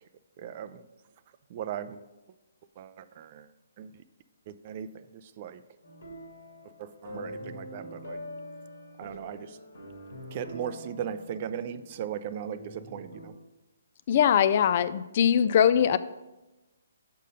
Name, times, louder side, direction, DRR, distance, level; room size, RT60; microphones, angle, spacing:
voice 1, 0.4-0.9 1.5-2.1 2.8-3.5 3.8-4.0 4.5-5.6 6.8-8.2 9.0-9.6 10.3-13.3, right 9 dB, 40° right, 13 dB, 0.4 m, -38 dB
sound 1, 5.8-13.3, equal, 85° left, 1.7 m, -44 dB
voice 2, 14.1-16.0, left 8 dB, 45° left, 14 dB, 0.3 m, -21 dB
6.6 x 5.3 x 5.2 m, 1.1 s
hypercardioid pair, 150°, 0 cm